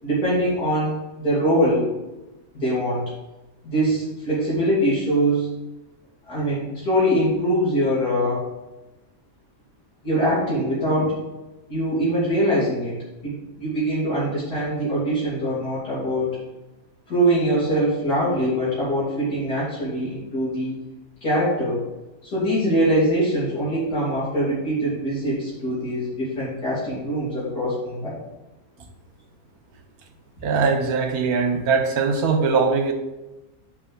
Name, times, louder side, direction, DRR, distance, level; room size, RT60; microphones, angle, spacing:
voice 1, 0.0-1.8 2.5-3.0 3.6-5.5 6.3-8.5 10.0-11.2 11.7-13.0 13.2-16.4 17.1-20.8 21.2-21.8 22.2-28.2, right 1 dB, 80° left, -9 dB, 3.3 m, -23 dB
voice 2, 30.4-32.9, right 5 dB, 75° right, 6 dB, 1.3 m, -21 dB
6.2 x 5.3 x 5.9 m, 1.0 s
omnidirectional pair, 1.6 m